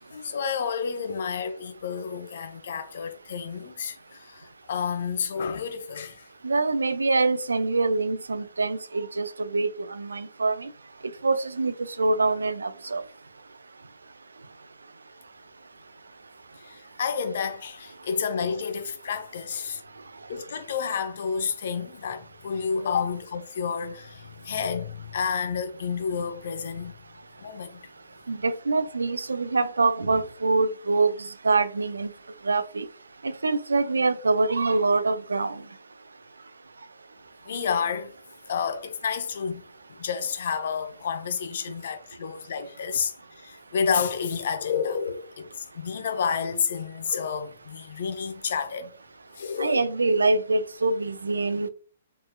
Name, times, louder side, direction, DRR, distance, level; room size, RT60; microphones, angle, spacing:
voice 1, 0.1-6.3 16.6-19.8 20.3-26.9 27.4-27.8 37.4-38.1 38.5-39.6 40.0-43.1 43.4-48.9 49.3-49.8, left 6 dB, 60° left, 0.7 m, -30 dB
voice 2, 6.4-10.7 11.2-13.0 28.3-32.1 32.4-32.9 33.2-35.6 49.6-51.7, right 3 dB, 80° right, 0.4 m, -25 dB
4.3 x 3.2 x 2.3 m
figure-of-eight pair, 125°, 0 cm